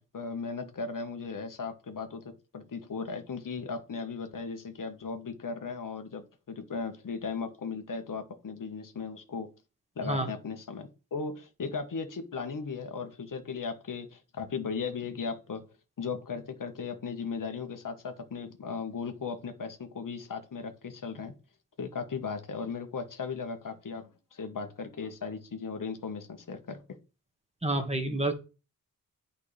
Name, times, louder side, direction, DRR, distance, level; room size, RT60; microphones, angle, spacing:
voice 1, 0.0-9.5 10.0-15.6 16.0-21.3 21.8-26.8, left 5 dB, 55° left, 1.5 m, -37 dB
voice 2, 27.6-28.3, right 1 dB, 15° right, 1.8 m, -28 dB
8.4 x 5.7 x 3.4 m
cardioid pair, 50°, 37 cm